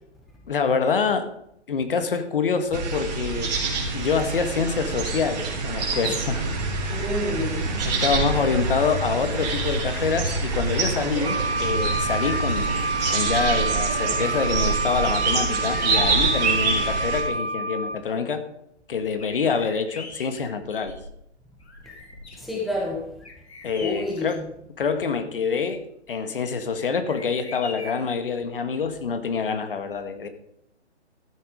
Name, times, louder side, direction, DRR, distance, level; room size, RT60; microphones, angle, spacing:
voice 1, 0.5-1.3 1.7-3.5 3.9-6.4 7.8-18.4 18.9-21.0 23.6-24.4 24.8-25.8 26.1-30.3, left 5 dB, 50° left, 9 dB, 1.7 m, -26 dB
sound 1, 2.7-17.2, right 4 dB, 35° right, 3.8 m, -26 dB
voice 2, 6.9-7.7 22.4-23.1 23.8-24.3, left 1 dB, ahead, -2 dB, 0.8 m, -28 dB
Wind instrument woodwind instrument, 11.2-18.0, right 2 dB, 65° right, 1.8 m, -28 dB
sound 2, 12.0-13.6 15.0-15.1 15.4-17.4 17.9-18.0 19.2-21.2 21.6-22.5 23.2-24.4 26.7-28.2, left 3 dB, 65° left, 3.2 m, -42 dB
14.0 x 8.2 x 5.1 m, 0.77 s
figure-of-eight pair, 140°, 35 cm